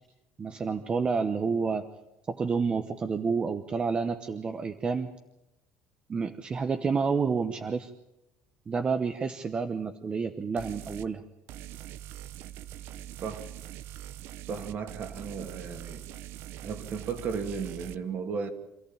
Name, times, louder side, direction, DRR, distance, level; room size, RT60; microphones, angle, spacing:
voice 1, 0.4-1.9 2.3-5.1 6.1-7.9 8.7-11.2, right 5 dB, 25° right, 8 dB, 1.0 m, -29 dB
sound 1, 10.6-11.1 11.5-18.0, right 12 dB, 65° right, 0.9 m, -43 dB
voice 2, 14.4-16.0 16.6-18.5, right 5 dB, 45° right, 6 dB, 2.5 m, -35 dB
26.5 x 14.5 x 8.8 m, 0.92 s
cardioid pair, 145°, 4 cm